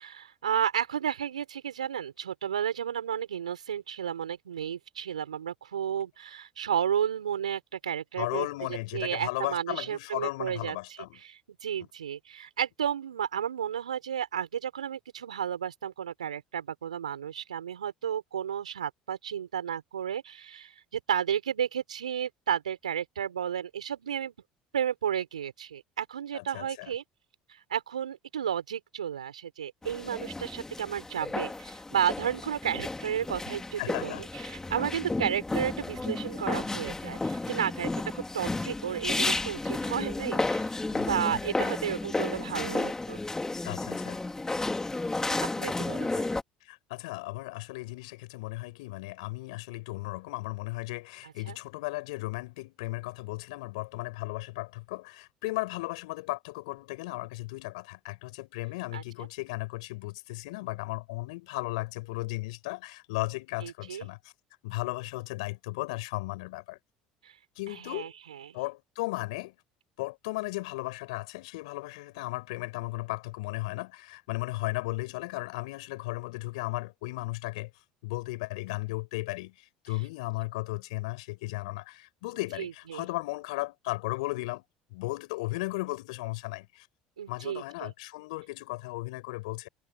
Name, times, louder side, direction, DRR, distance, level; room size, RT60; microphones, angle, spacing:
voice 1, 0.0-8.5 8.9-10.8 11.1-24.3 24.7-27.0 27.5-40.7 41.1-43.2 45.6-46.3 51.2-51.6 58.9-59.0 63.6-64.1 67.2-67.3 67.7-68.6 82.6-83.1 87.2-87.9, right 9 dB, 85° right, 5.3 m, -32 dB
voice 2, 8.2-11.2 26.3-26.9 33.8-34.2 40.9-41.4 43.6-44.2 46.6-64.3 64.6-66.8 67.6-68.1 68.5-69.5 70.0-77.7 78.0-79.5 79.8-84.6 84.9-86.9 87.3-89.7, left 22 dB, 70° left, 5.5 m, -35 dB
sound 1, 29.8-46.4, left 2 dB, 15° left, 3.4 m, -32 dB
hypercardioid pair, 65°, 4 cm